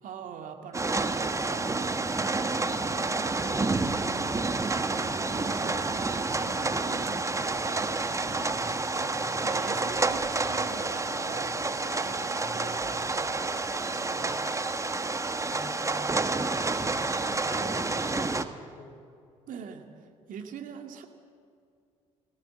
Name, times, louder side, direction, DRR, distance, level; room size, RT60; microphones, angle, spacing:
voice 1, 0.0-3.7 5.0-8.4 8.9-14.5 17.3-17.4 19.5-21.1, right 7 dB, 60° right, 4 dB, 2.1 m, -44 dB
sound 1, 0.7-18.4, right 3 dB, 20° right, 1.3 m, -29 dB
voice 2, 4.2-4.7 9.2-9.5 15.4-16.4 17.2-19.0, left 2 dB, 55° left, 2 dB, 3.2 m, -47 dB
sound 2, 7.4-14.5, left 1 dB, 20° left, 3.0 m, -50 dB
19.5 x 17.5 x 7.7 m, 2.4 s
hypercardioid pair, 55°, 16 cm